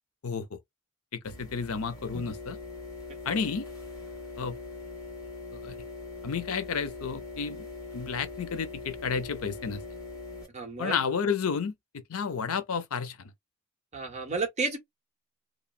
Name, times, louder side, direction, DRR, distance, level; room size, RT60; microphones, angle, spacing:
voice 1, 0.2-0.6 1.1-2.6 3.3-3.7 4.4-4.6 5.5-5.8 6.2-7.7 7.9-9.8 10.8-11.7 12.1-13.3, left 6 dB, 75° left, 0.6 m, -31 dB
sound 1, 1.2-10.5, left 3 dB, 15° left, 1.6 m, -42 dB
voice 2, 10.5-11.0 13.9-14.8, right 4 dB, 30° right, 0.9 m, -31 dB
3.0 x 2.1 x 2.4 m
head